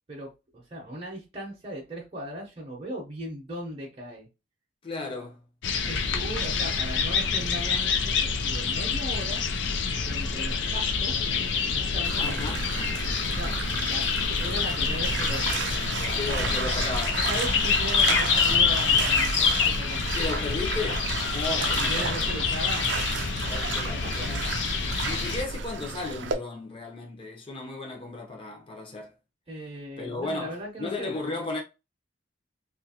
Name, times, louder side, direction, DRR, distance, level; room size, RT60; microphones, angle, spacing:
voice 1, 0.1-4.3 5.9-9.4 10.0-11.2 11.7-12.5 13.3-13.5 13.9-16.4 17.3-20.4 21.6-23.1 25.5-25.6 29.5-31.2, right 1 dB, 30° right, 0.7 m, -38 dB
voice 2, 4.8-5.4 12.2-12.7 16.2-17.2 20.1-22.1 23.5-24.6 25.0-29.1 30.0-31.6, left 3 dB, 30° left, 0.7 m, -35 dB
sound 1, 5.6-25.4, left 5 dB, 70° left, 0.4 m, -26 dB
Bathtub (filling or washing), 12.0-26.3, right 5 dB, 65° right, 0.4 m, -33 dB
2.8 x 2.5 x 2.8 m
head